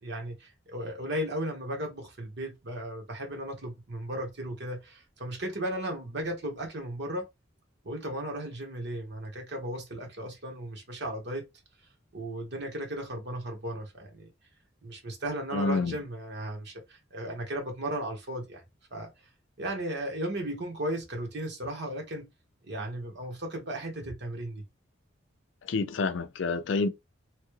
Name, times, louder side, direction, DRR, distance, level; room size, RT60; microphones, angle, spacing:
voice 1, 0.0-7.3 7.8-11.4 12.1-14.3 14.8-18.6 18.9-19.1 19.6-22.3 22.6-24.6, right 1 dB, 60° right, 1.2 m, -35 dB
voice 2, 15.5-16.0 25.6-26.9, left 3 dB, 70° left, 0.4 m, -28 dB
3.0 x 2.3 x 3.1 m
head